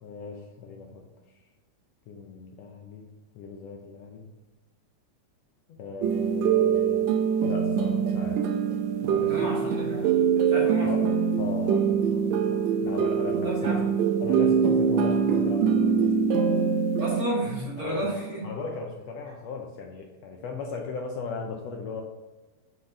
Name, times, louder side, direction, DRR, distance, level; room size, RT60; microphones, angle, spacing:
voice 1, 0.0-1.1 2.1-4.3 5.7-8.4 9.0-9.7 10.8-11.0 11.4-13.8 14.2-16.2 17.8-18.1 18.4-22.0, left 4 dB, 75° left, 2 dB, 1.7 m, -37 dB
sound 1, 6.0-17.3, right 7 dB, 80° right, 1.9 m, -24 dB
voice 2, 9.3-10.1 10.5-11.1 13.4-13.9 17.0-18.4, right 1 dB, 35° right, -5 dB, 2.1 m, -32 dB
7.9 x 4.0 x 3.7 m, 1.2 s
omnidirectional pair, 3.3 m